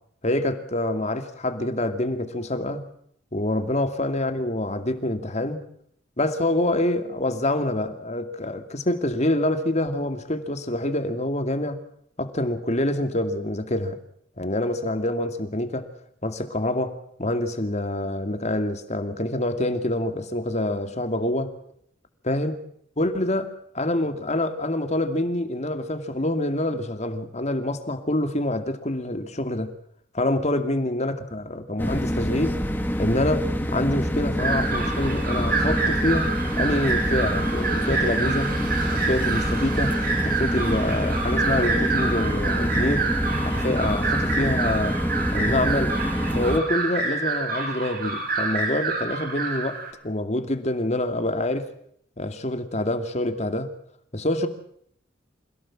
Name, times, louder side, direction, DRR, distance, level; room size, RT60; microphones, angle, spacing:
voice 1, 0.2-2.8 3.3-5.6 6.2-11.8 12.2-14.0 14.4-15.9 16.2-21.5 22.3-22.6 23.0-23.5 23.8-29.7 30.1-32.6 33.0-38.5 38.9-39.9 40.2-43.1 43.5-45.0 45.3-46.0 46.3-49.8 50.0-51.7 52.2-53.7 54.1-54.5, left 1 dB, 35° left, 2.5 m, -26 dB
sound 1, 31.8-46.6, equal, 10° left, 2.3 m, -26 dB
sound 2, 34.4-49.9, right 4 dB, 55° right, 7.3 m, -28 dB
27.5 x 17.0 x 7.4 m
head